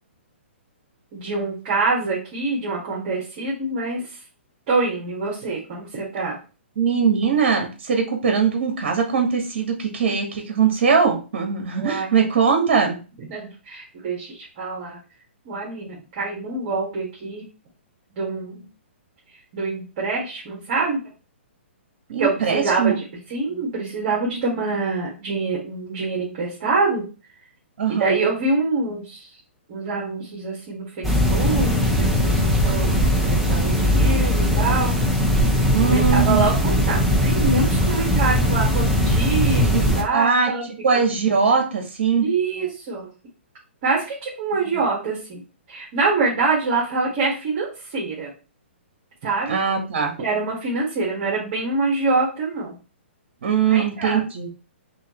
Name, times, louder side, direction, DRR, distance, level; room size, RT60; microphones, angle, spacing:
voice 1, 1.1-4.0 4.7-6.4 11.8-12.1 13.3-15.0 15.5-17.5 18.2-18.7 19.5-21.0 22.2-22.9 23.3-27.1 27.9-29.3 29.7-35.0 35.8-40.7 40.9-41.0 42.2-43.1 43.8-45.4 45.7-47.7 47.9-48.3 49.2-49.6 50.2-52.8 53.7-54.2, right 3 dB, 45° right, -5 dB, 1.9 m, -25 dB
voice 2, 6.8-13.0 22.1-23.0 24.4-24.6 27.8-28.1 35.7-36.5 39.7-39.8 40.1-42.2 44.7-44.8 49.5-50.1 53.4-54.5, right 6 dB, 60° right, 3 dB, 1.5 m, -21 dB
sound 1, 31.0-40.0, equal, ahead, 0.9 m, -19 dB
5.5 x 2.9 x 3.1 m, 0.34 s
hypercardioid pair, 135°, 7 cm